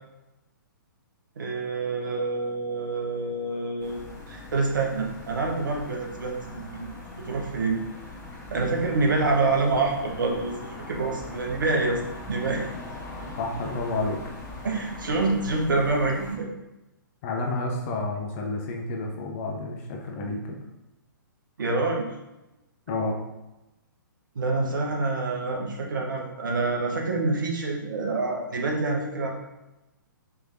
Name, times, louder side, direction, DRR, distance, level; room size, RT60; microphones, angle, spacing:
voice 1, 1.4-4.0 4.3-6.9 7.3-7.8 8.5-12.0 12.3-12.7 14.6-16.5 21.6-22.0 24.3-29.3, right 3 dB, 65° right, 1 dB, 1.0 m, -26 dB
sound 1, 3.8-16.4, left 2 dB, 15° left, 1.4 m, -41 dB
voice 2, 13.4-14.2 17.2-20.6 22.9-23.2, left 2 dB, 35° left, 1 dB, 0.7 m, -30 dB
4.7 x 3.2 x 2.7 m, 0.98 s
figure-of-eight pair, 125°, 11 cm